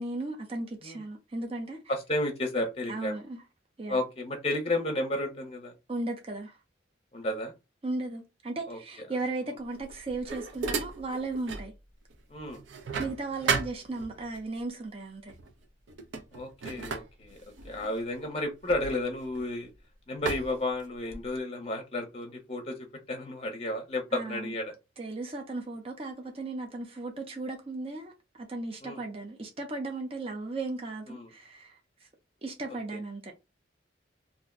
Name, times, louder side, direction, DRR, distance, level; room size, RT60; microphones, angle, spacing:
voice 1, 0.0-1.8 2.9-3.4 3.8-4.0 5.9-6.6 7.8-11.7 13.0-15.3 24.1-24.5 25.0-31.8 32.4-33.3, right 2 dB, 30° right, 0.5 m, -36 dB
voice 2, 1.9-3.2 3.9-5.7 7.1-7.5 8.7-8.8 12.3-12.6 16.3-17.4 17.6-19.7 20.1-22.8 23.1-24.7 28.8-29.0 31.1-31.3, left 1 dB, 30° left, 0.6 m, -32 dB
sound 1, 9.7-11.7 12.1-14.4 15.3-15.5 15.9-19.7 20.2-21.4, right 4 dB, 85° right, 0.5 m, -35 dB
2.5 x 2.1 x 3.6 m
head